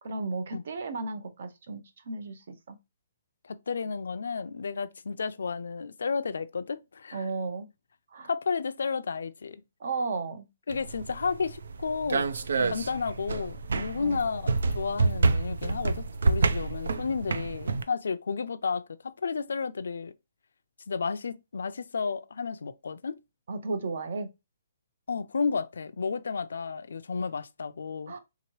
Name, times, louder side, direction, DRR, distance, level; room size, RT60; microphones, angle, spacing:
voice 1, 0.0-2.8 7.1-7.7 8.1-8.3 9.8-10.5 12.6-12.8 14.0-14.2 23.5-24.3 28.1-28.2, right 3 dB, 50° right, 0.7 m, -34 dB
voice 2, 3.4-7.2 8.2-9.6 10.7-12.3 12.6-20.1 20.9-23.2 25.1-28.1, left 5 dB, 85° left, 0.4 m, -32 dB
sound 1, 10.7-17.8, right 3 dB, 80° right, 0.4 m, -28 dB
3.6 x 2.9 x 3.0 m
hypercardioid pair, 180°, 0 cm